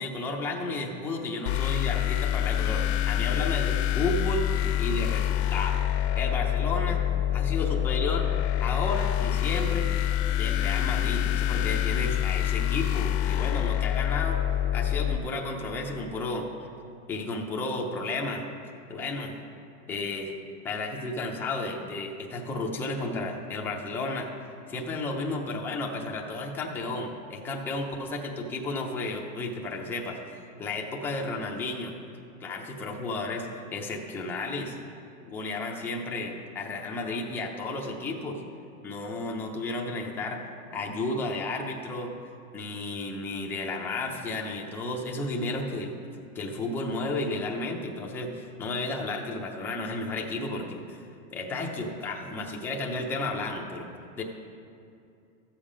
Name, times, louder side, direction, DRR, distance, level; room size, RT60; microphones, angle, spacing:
voice 1, 0.0-4.5 4.8-5.9 6.2-7.0 7.3-8.3 8.6-9.9 10.3-14.4 14.7-16.7 17.1-18.4 18.9-19.3 19.9-20.3 20.6-24.3 24.7-31.9 32.4-34.8 35.3-38.4 38.8-40.4 40.7-42.1 42.5-45.9 46.3-51.0 51.3-53.9 54.2-54.3, left 2 dB, 5° left, -1 dB, 0.5 m, -32 dB
sound 1, 1.5-15.2, left 11 dB, 50° left, 0.6 m, -26 dB
14.0 x 7.3 x 5.0 m, 2.6 s
supercardioid pair, 155°, 43 cm